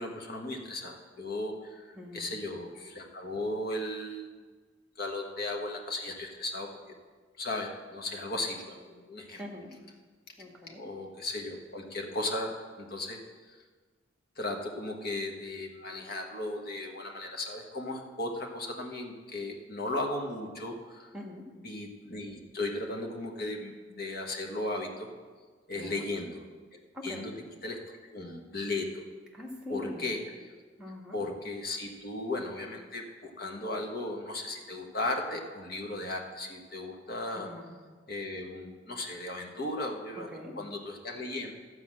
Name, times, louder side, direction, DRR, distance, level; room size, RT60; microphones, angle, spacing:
voice 1, 0.0-4.3 5.0-6.7 7.4-9.4 10.8-13.2 13.5-13.6 14.4-21.1 21.6-25.1 25.7-26.4 27.0-27.3 27.6-29.0 29.7-30.2 31.1-37.5 38.1-40.3 40.5-41.5, left 2 dB, 55° left, 2 dB, 1.4 m, -36 dB
voice 2, 1.9-2.3 9.4-9.7 10.4-10.8 21.1-21.5 25.7-26.0 26.9-27.3 29.3-30.1 30.8-31.2 37.3-37.7 40.3-40.6, left 1 dB, 5° right, 0 dB, 1.5 m, -42 dB
13.0 x 4.8 x 7.6 m, 1.5 s
head